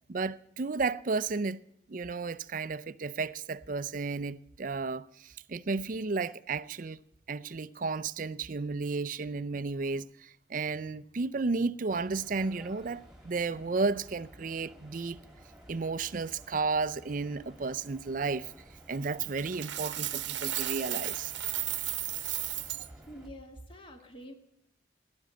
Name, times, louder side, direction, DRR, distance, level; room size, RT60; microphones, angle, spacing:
voice 1, 0.1-1.6 1.9-7.0 7.3-15.2 15.7-18.5 18.9-21.3, right 4 dB, 45° right, 0.5 m, -33 dB
sound 1, 11.9-23.3, equal, 5° right, 2.3 m, -54 dB
Coin (dropping), 19.4-22.9, right 14 dB, 85° right, 1.0 m, -34 dB
voice 2, 23.1-24.3, equal, 30° left, 2.1 m, -46 dB
17.5 x 10.5 x 7.7 m
head